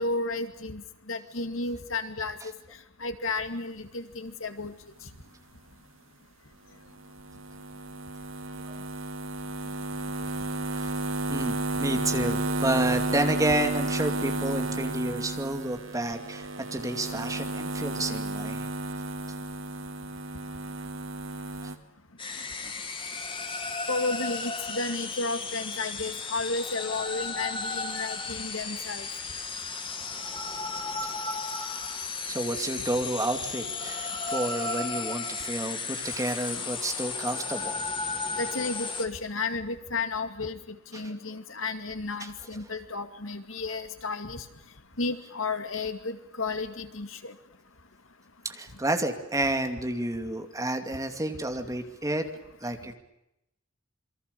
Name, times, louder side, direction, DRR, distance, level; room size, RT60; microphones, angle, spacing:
voice 1, 0.0-2.4 3.0-4.7 23.9-29.1 38.4-40.6 40.9-44.4 45.0-47.3, left 3 dB, 75° left, 8 dB, 2.4 m, -32 dB
sound 1, 6.9-21.8, right 2 dB, 75° right, 2.4 m, -32 dB
voice 2, 11.3-18.7 21.6-21.7 32.3-37.8 40.9-41.1 42.2-42.3 48.4-52.2 52.6-52.9, right 1 dB, 15° right, 6 dB, 2.5 m, -30 dB
sound 2, 22.2-39.1, left 4 dB, 25° left, 2.4 m, -34 dB
27.5 x 23.5 x 6.9 m, 0.86 s
head